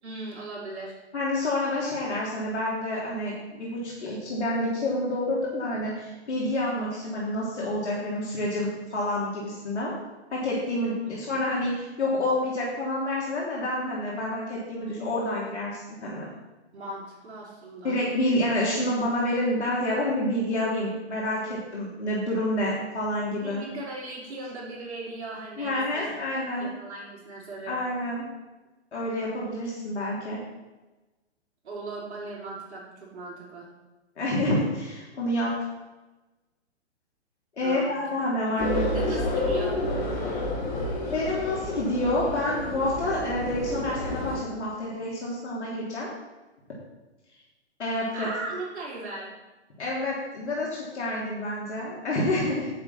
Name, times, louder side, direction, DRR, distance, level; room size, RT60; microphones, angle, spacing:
voice 1, 0.0-1.0 16.7-18.0 23.4-26.1 26.6-27.8 31.6-33.7 37.6-37.9 38.9-39.8 48.1-49.3, right 2 dB, 70° right, -4 dB, 4.1 m, -38 dB
voice 2, 1.1-9.9 10.3-16.3 17.8-23.6 25.6-26.7 27.7-28.3 28.9-30.4 34.2-35.6 37.6-39.1 40.2-40.5 41.1-46.1 47.8-48.3 49.8-52.7, left 1 dB, 75° left, -6 dB, 3.3 m, -28 dB
sound 1, 38.6-44.3, left 2 dB, 25° left, 2.6 m, -29 dB
10.5 x 8.2 x 4.3 m, 1.1 s
figure-of-eight pair, 125°, 34 cm